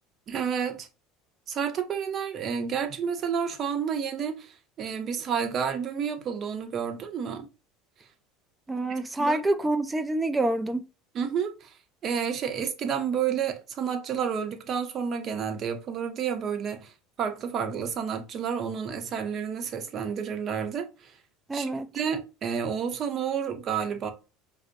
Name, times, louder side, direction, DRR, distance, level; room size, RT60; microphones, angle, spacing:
voice 1, 0.3-0.9 1.5-7.5 9.2-9.4 11.1-11.7 12.0-16.9 17.2-21.1 21.5-24.1, right 7 dB, 40° right, 0.7 m, -30 dB
voice 2, 8.7-10.9 21.5-21.9, right 2 dB, 15° right, 0.3 m, -27 dB
5.0 x 2.0 x 2.5 m
supercardioid pair, 110°, 0 cm